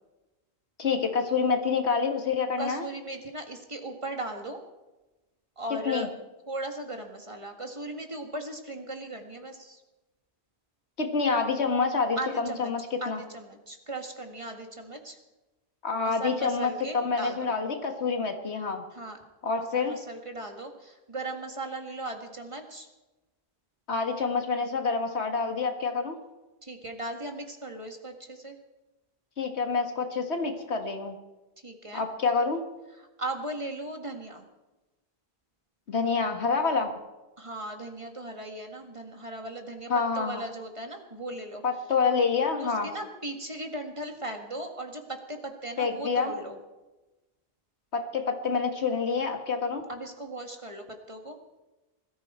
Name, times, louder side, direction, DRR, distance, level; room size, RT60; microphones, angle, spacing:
voice 1, 0.8-2.9 5.9-6.1 11.0-13.2 15.8-18.8 19.4-19.9 23.9-26.2 29.4-31.2 31.9-32.6 35.9-36.9 39.9-40.4 41.6-42.9 45.8-46.3 47.9-49.8, left 5 dB, 80° left, 5 dB, 1.9 m, -27 dB
voice 2, 2.6-4.6 5.6-6.1 6.5-9.8 12.2-12.7 13.0-15.2 16.0-17.6 18.9-19.2 19.6-22.9 26.6-28.6 31.6-32.0 33.2-34.4 37.4-41.6 42.6-46.6 49.9-51.4, right 2 dB, 30° right, 4 dB, 1.7 m, -38 dB
21.0 x 14.0 x 4.4 m, 1.1 s
omnidirectional pair, 1.1 m